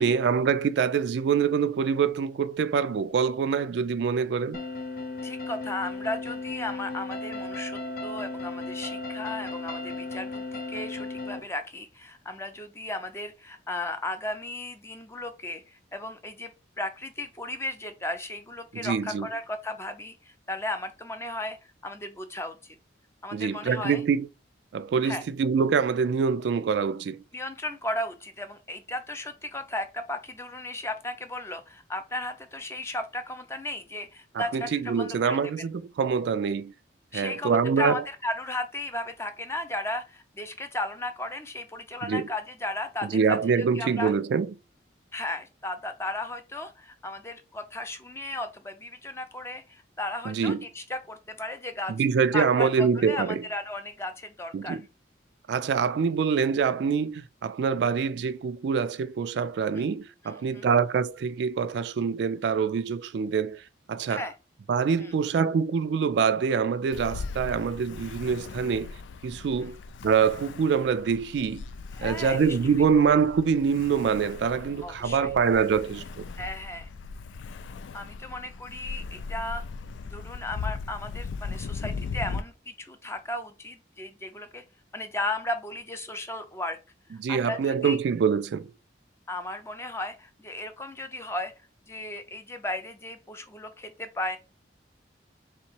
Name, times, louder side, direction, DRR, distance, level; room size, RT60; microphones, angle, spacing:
voice 1, 0.0-4.6 18.7-19.3 23.3-24.3 24.7-27.2 34.3-36.7 37.1-38.0 42.0-42.3 43.0-44.5 50.3-50.6 51.9-53.4 54.5-54.8 55.5-63.6 63.9-64.3 64.7-68.9 69.2-71.6 72.0-76.2 87.2-88.7, right 6 dB, 70° right, 0.3 m, -25 dB
sound 1, 4.5-11.4, left 3 dB, 55° left, 0.8 m, -35 dB
voice 2, 5.2-16.5 16.8-21.6 21.8-22.7 23.2-24.0 25.0-25.2 27.3-35.6 37.1-44.1 45.1-51.9 52.3-54.8 59.7-59.8 60.2-60.7 64.1-64.3 65.0-65.1 69.6-69.7 71.9-72.6 74.8-75.3 76.4-76.9 77.9-79.6 80.1-84.6 84.9-86.8 87.3-88.0 89.3-91.5 91.9-94.4, left 1 dB, 15° left, 0.5 m, -35 dB
Ocean, 66.9-82.4, left 4 dB, 80° left, 0.3 m, -38 dB
3.6 x 2.9 x 4.4 m
head